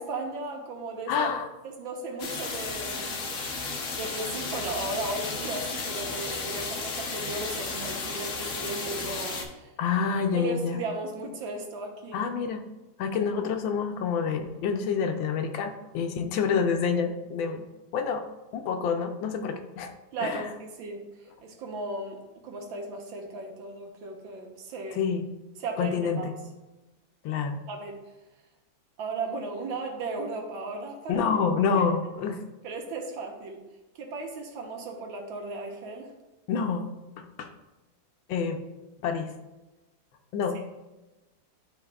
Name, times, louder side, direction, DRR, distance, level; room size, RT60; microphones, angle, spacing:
voice 1, 0.0-1.3 1.8-3.2 3.9-9.7 10.3-12.2 20.1-25.1 25.6-26.3 27.7-28.0 29.0-31.2 31.7-31.8 32.6-33.6 33.9-36.1, right 3 dB, 80° right, 2 dB, 1.7 m, -36 dB
voice 2, 1.1-1.4 9.8-10.8 12.1-12.6 13.0-17.7 17.9-18.2 18.5-19.9 20.2-20.5 24.9-25.2 25.8-26.3 27.2-27.6 31.1-32.4 36.5-36.9 37.4-37.5 38.3-38.6 39.0-39.3 40.3-40.7, left 6 dB, 85° left, 5 dB, 1.5 m, -27 dB
sound 1, 2.2-9.4, left 4 dB, 50° left, 1.1 m, -33 dB
11.5 x 4.0 x 2.3 m, 1.1 s
omnidirectional pair, 2.1 m